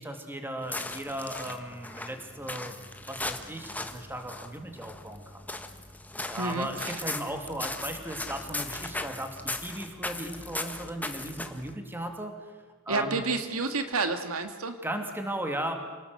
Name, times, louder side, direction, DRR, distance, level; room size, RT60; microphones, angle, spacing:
voice 1, 0.0-2.8 3.1-5.4 6.3-12.3 12.9-13.2 14.8-15.7, right 1 dB, 10° right, 5 dB, 2.9 m, -36 dB
sound 1, 0.6-11.7, left 2 dB, 10° left, 1.5 m, -38 dB
voice 2, 6.4-7.0 12.9-14.8, right 3 dB, 85° right, 7 dB, 2.2 m, -30 dB
28.0 x 19.0 x 8.1 m, 1.4 s
head